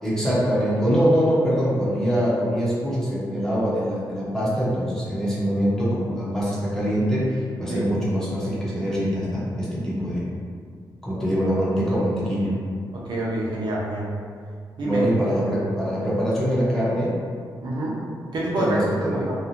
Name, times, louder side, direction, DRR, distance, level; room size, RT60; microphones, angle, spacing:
voice 1, 0.0-10.2 11.0-12.5 14.8-17.1 18.6-19.3, equal, 5° left, -9 dB, 0.8 m, -23 dB
voice 2, 12.9-14.1 14.8-15.0 17.6-18.0 18.3-18.8 19.0-19.3, right 1 dB, 70° right, -5 dB, 0.5 m, -26 dB
2.6 x 2.1 x 2.8 m, 2.1 s
cardioid pair, 110°, 8 cm